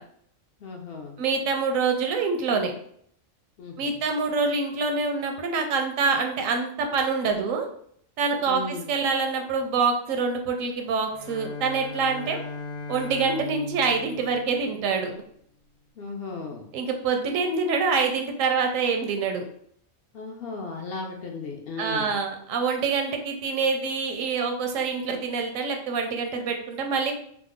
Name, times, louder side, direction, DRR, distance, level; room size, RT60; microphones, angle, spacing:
voice 1, 0.6-1.2 3.6-4.0 8.5-8.9 16.0-16.7 20.1-22.1, left 4 dB, 60° left, 0 dB, 0.7 m, -36 dB
voice 2, 1.2-2.7 3.8-7.7 8.2-12.4 12.9-15.1 16.7-19.5 21.8-27.1, right 4 dB, 85° right, 4 dB, 1.0 m, -26 dB
Bowed string instrument, 11.0-15.2, left 3 dB, 85° left, 1.0 m, -38 dB
2.9 x 2.0 x 3.5 m, 0.65 s
omnidirectional pair, 1.3 m